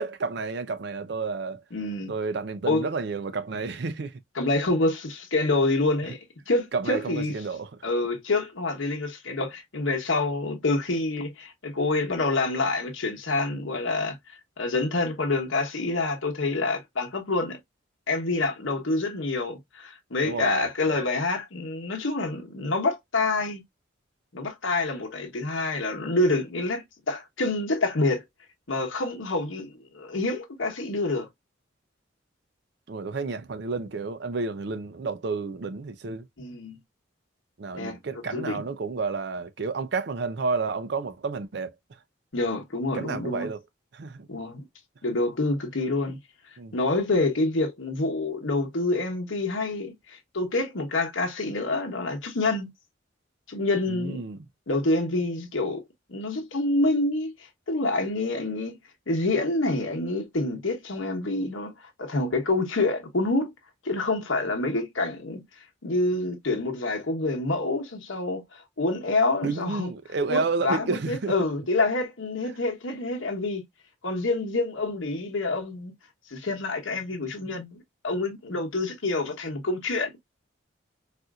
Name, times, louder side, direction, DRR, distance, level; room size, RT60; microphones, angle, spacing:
voice 1, 0.0-1.6 2.1-4.2 6.7-7.9 20.2-21.0 32.9-36.3 37.6-42.0 42.9-43.6 43.9-44.3 46.6-46.8 53.9-54.4 69.4-71.3, right 4 dB, 60° right, 0.4 m, -31 dB
voice 2, 1.7-2.1 2.7-2.8 4.4-6.2 6.5-7.3 7.8-14.2 14.6-17.6 18.1-23.6 24.3-28.2 28.7-31.3 36.4-36.8 37.7-38.6 42.3-43.5 44.3-44.6 45.0-46.2 46.7-52.7 53.5-54.2 54.7-55.8 56.1-57.3 57.7-58.8 59.1-63.5 63.8-65.4 65.8-69.9 70.3-73.6 74.0-75.9 76.3-80.1, left 2 dB, 80° left, 1.0 m, -27 dB
4.2 x 2.5 x 2.3 m
head